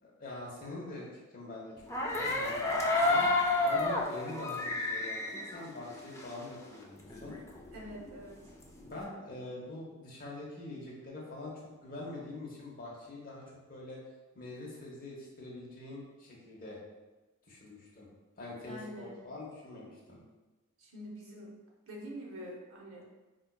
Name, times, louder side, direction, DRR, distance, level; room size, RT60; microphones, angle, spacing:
voice 1, 0.0-1.1 1.3-2.7 3.0-3.3 3.6-7.4 8.8-13.4 13.7-14.0 14.3-16.8 17.5-18.1 18.4-20.2, left 2 dB, 40° left, -4 dB, 0.9 m, -44 dB
sound 1, 1.9-6.5 6.8-6.9 7.1-9.0, left 2 dB, 15° left, 0.4 m, -31 dB
voice 2, 7.7-8.4 18.6-19.2 20.8-21.5 21.9-23.0, equal, 65° right, -2 dB, 0.8 m, -45 dB
4.3 x 2.6 x 2.3 m, 1.2 s
head